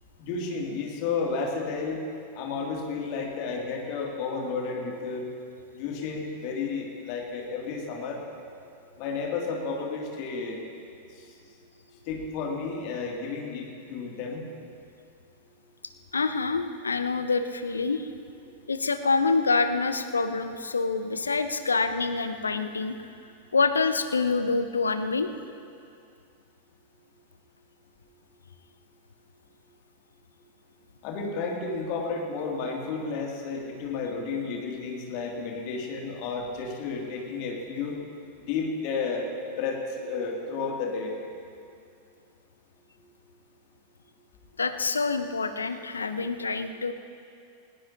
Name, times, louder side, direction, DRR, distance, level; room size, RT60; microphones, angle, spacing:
voice 1, 0.2-2.0 2.4-5.2 5.7-8.2 9.0-10.6 11.1-11.2 12.1-14.4 31.0-37.9 38.5-39.3 39.6-41.1 46.2-46.3, left 4 dB, 45° left, -1 dB, 2.7 m, -32 dB
voice 2, 16.1-18.1 18.7-23.1 23.5-25.3 44.6-46.9, left 4 dB, 75° left, 10 dB, 0.7 m, -26 dB
19.5 x 19.0 x 2.9 m, 2.4 s
figure-of-eight pair, 90°, 0 cm